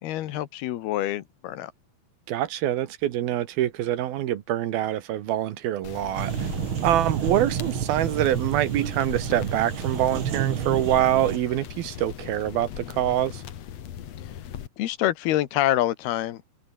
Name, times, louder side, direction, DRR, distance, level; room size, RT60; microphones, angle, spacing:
voice 1, 0.0-1.7 14.8-16.4, left 14 dB, 90° left, 3.3 m, -26 dB
voice 2, 2.3-6.5 6.8-13.4, right 12 dB, 75° right, 3.2 m, -25 dB
sound 1, 5.8-14.7, left 10 dB, 55° left, 2.2 m, -39 dB
sound 2, 6.2-11.4, right 9 dB, 60° right, 1.3 m, -30 dB
open air
omnidirectional pair, 4.4 m